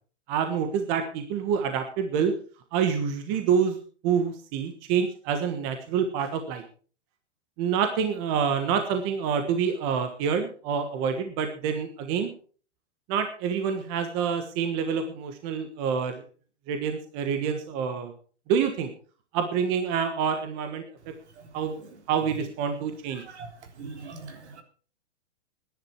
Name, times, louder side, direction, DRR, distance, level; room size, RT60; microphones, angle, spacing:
voice 1, 0.3-2.3 2.7-3.8 4.0-6.6 7.6-12.3 13.1-16.2 16.7-18.1 18.5-18.9 19.3-20.8 21.5-21.8 22.1-23.2, right 7 dB, 25° right, 7 dB, 1.4 m, -27 dB
voice 2, 23.2-23.5 23.8-24.6, right 4 dB, 70° right, 6 dB, 3.6 m, -41 dB
18.0 x 10.5 x 4.5 m, 0.41 s
hypercardioid pair, 170°, 35 cm